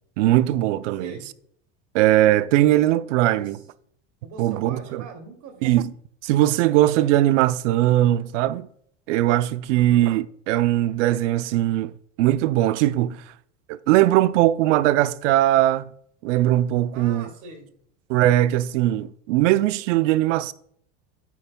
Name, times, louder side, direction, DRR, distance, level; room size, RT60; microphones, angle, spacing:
voice 1, 0.2-1.1 1.9-3.6 4.4-5.0 5.6-5.9 6.2-8.7 9.1-11.9 12.2-13.2 13.7-15.9 16.2-17.3 18.1-20.5, right 14 dB, 80° right, 0.6 m, -20 dB
voice 2, 3.2-3.6 4.2-5.8 9.7-10.2 16.9-17.7, right 4 dB, 55° right, 2.5 m, -42 dB
9.5 x 8.7 x 2.3 m
supercardioid pair, 115°, 36 cm